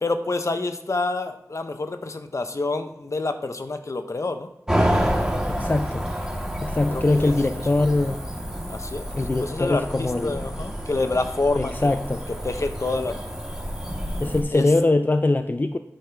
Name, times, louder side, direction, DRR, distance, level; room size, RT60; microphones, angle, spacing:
voice 1, 0.0-4.5 6.9-7.3 7.8-7.9 8.7-9.1 9.4-11.9 12.4-13.2 14.5-14.7, left 3 dB, 60° left, 8 dB, 0.8 m, -27 dB
Cricket / Motor vehicle (road), 4.7-14.4, equal, 10° right, 1.8 m, -29 dB
voice 2, 5.5-6.0 6.6-8.2 9.2-10.4 11.6-12.2 14.2-15.8, left 2 dB, 35° left, 8 dB, 0.4 m, -22 dB
8.9 x 5.6 x 4.6 m, 0.86 s
wide cardioid pair, 65°, 6 cm